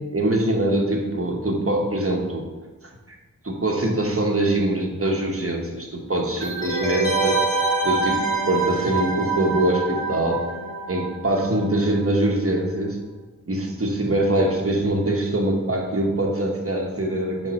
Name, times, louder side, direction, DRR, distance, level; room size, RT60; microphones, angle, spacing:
voice 1, 0.0-2.4 3.4-7.4 7.8-10.4 10.9-13.0 13.5-17.5, right 1 dB, 45° right, 1 dB, 1.1 m, -23 dB
sound 1, 6.4-11.9 12.1-12.2, right 3 dB, 10° left, 1.6 m, -25 dB
5.1 x 4.2 x 5.2 m, 1.2 s
wide cardioid pair, 40°, 32 cm